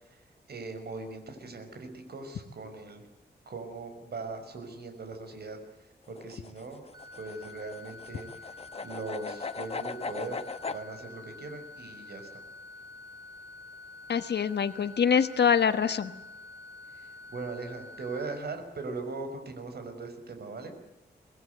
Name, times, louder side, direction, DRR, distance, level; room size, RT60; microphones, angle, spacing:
voice 1, 0.5-3.0 3.5-5.6 6.1-6.8 7.2-8.3 8.8-10.4 10.7-12.3 17.3-20.7, right 3 dB, 70° right, 6 dB, 5.5 m, -39 dB
sound 1, 6.1-10.8, left 4 dB, 35° left, 1.1 m, -38 dB
sound 2, 6.9-18.4, left 3 dB, 25° right, 4.2 m, -48 dB
voice 2, 14.1-16.1, left 7 dB, 75° left, 11 dB, 1.3 m, -24 dB
25.0 x 20.5 x 7.9 m, 0.94 s
wide cardioid pair, 155°, 17 cm